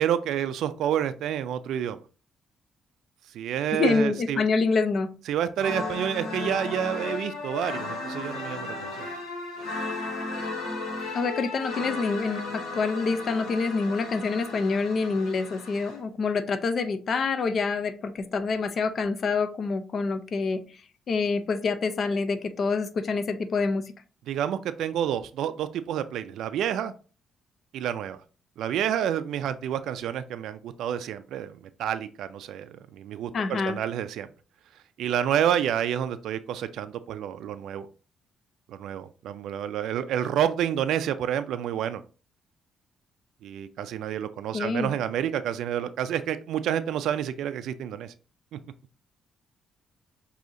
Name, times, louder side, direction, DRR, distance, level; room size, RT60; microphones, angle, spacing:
voice 1, 0.0-2.0 3.3-4.5 5.3-9.1 24.3-26.9 27.7-28.2 28.6-34.3 35.0-37.9 38.7-42.0 43.4-48.1 48.5-48.6, right 10 dB, 80° right, 11 dB, 0.3 m, -29 dB
voice 2, 3.7-5.1 11.1-20.6 21.1-23.8 33.3-33.8 44.5-44.9, left 4 dB, 50° left, 10 dB, 0.5 m, -26 dB
sound 1, 5.6-16.0, left 3 dB, 85° left, 1.5 m, -35 dB
6.2 x 2.7 x 2.6 m, 0.36 s
cardioid pair, 90°, 0 cm